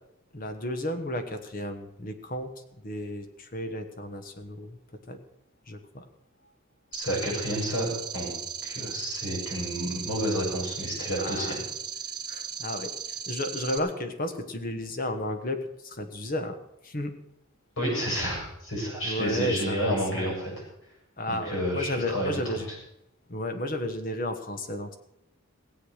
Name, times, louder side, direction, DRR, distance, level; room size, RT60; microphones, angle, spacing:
voice 1, 0.3-2.5 2.8-4.8 5.1-5.2 5.7-6.0 11.2-11.6 12.3-16.6 16.8-17.1 19.0-20.3 21.2-22.7 23.3-25.0, left 1 dB, 40° left, 7 dB, 1.2 m, -33 dB
voice 2, 6.9-7.9 8.1-8.3 8.6-11.5 17.8-20.5 21.3-22.6, equal, 60° left, -2 dB, 7.3 m, -30 dB
sound 1, 6.9-13.8, right 7 dB, 20° right, 1.1 m, -37 dB
17.0 x 8.1 x 6.5 m, 0.83 s
head